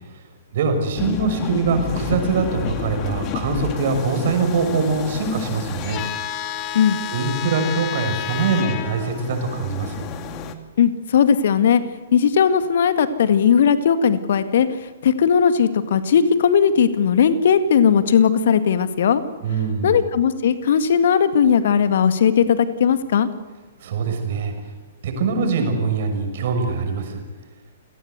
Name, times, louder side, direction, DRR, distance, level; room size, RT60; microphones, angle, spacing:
voice 1, 0.5-6.0 7.1-10.1 19.4-20.0 23.8-24.5 25.0-27.2, right 4 dB, 50° right, 5 dB, 6.2 m, -23 dB
sound 1, 1.0-10.5, left 7 dB, 30° left, 2.1 m, -30 dB
voice 2, 10.8-11.8 12.1-14.7 15.0-19.2 19.8-23.3, left 7 dB, 55° left, 11 dB, 2.0 m, -17 dB
29.0 x 18.0 x 8.1 m, 1.3 s
figure-of-eight pair, 115°, 0 cm